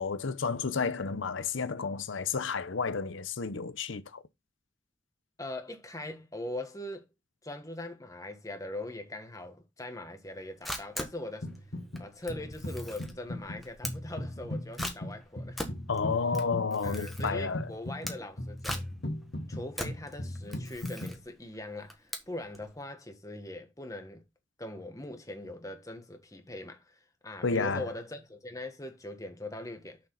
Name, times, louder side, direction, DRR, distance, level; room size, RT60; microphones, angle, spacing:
voice 1, 0.0-4.2 15.9-17.7 27.4-27.8, left 5 dB, 75° left, 0.7 m, -31 dB
voice 2, 5.4-7.1 7.4-11.5 12.0-15.6 16.8-18.9 19.5-24.2 24.6-30.0, left 1 dB, 15° left, 1.4 m, -41 dB
Camera, 10.3-22.7, equal, ahead, 1.3 m, -42 dB
sound 1, 11.4-12.0 12.3-21.2, left 1 dB, 55° left, 1.7 m, -38 dB
6.8 x 6.5 x 3.9 m
head